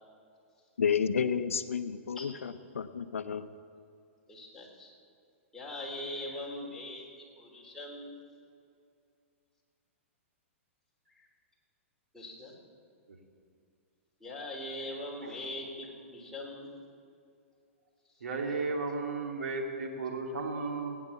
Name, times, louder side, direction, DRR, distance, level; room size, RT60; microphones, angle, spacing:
voice 1, 0.8-3.5, left 7 dB, 85° left, 12 dB, 0.7 m, -31 dB
voice 2, 4.3-4.9 5.5-8.2 11.1-11.3 12.1-12.6 14.2-16.7 18.5-18.6, left 1 dB, 5° left, -4 dB, 3.5 m, -41 dB
voice 3, 18.2-20.9, right 3 dB, 85° right, 2 dB, 2.4 m, -34 dB
18.0 x 9.6 x 7.1 m, 2.4 s
hypercardioid pair, 125°, 7 cm